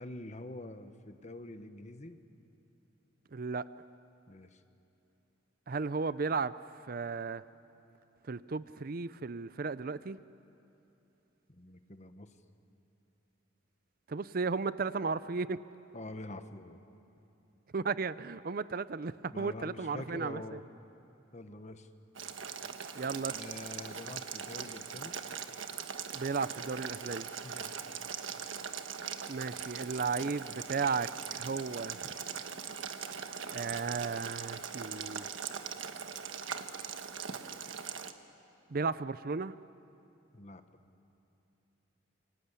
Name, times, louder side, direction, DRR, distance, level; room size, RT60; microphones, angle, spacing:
voice 1, 0.0-2.2 4.3-4.6 11.5-12.3 15.9-16.8 19.3-20.6 21.3-21.9 23.3-25.2 27.4-27.9 40.3-40.6, left 1 dB, 35° left, 8 dB, 1.3 m, -46 dB
voice 2, 3.3-3.7 5.7-6.5 6.9-7.4 8.3-10.2 14.1-15.6 17.7-20.6 22.9-23.4 26.1-27.3 29.3-32.1 33.5-35.3 38.7-39.5, right 4 dB, 50° right, 15 dB, 0.5 m, -34 dB
Boiling, 22.1-38.1, right 7 dB, 85° right, 1.3 m, -41 dB
28.5 x 25.0 x 8.4 m, 2.9 s
head